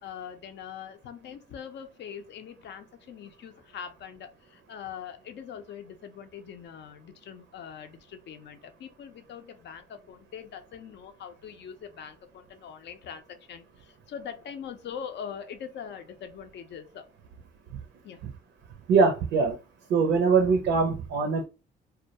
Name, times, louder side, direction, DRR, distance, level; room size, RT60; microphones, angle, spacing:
voice 1, 0.0-17.1 18.0-18.2, left 8 dB, 65° left, 0.5 m, -42 dB
voice 2, 18.9-19.6 19.9-21.4, right 4 dB, 75° right, 0.5 m, -22 dB
2.2 x 2.0 x 2.8 m
cardioid pair, 90°, 20 cm